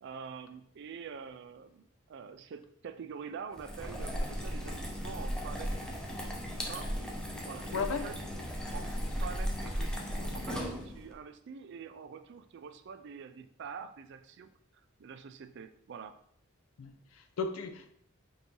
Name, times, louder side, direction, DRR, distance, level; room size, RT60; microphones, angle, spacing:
voice 1, 0.0-6.0 6.7-6.9 7.4-8.2 8.7-14.5 15.0-16.2, right 6 dB, 60° right, 0.3 m, -46 dB
sound 1, 3.5-11.1, equal, 5° left, 0.5 m, -36 dB
voice 2, 7.7-8.1 16.8-17.9, left 5 dB, 90° left, 0.5 m, -35 dB
5.3 x 2.7 x 2.9 m
head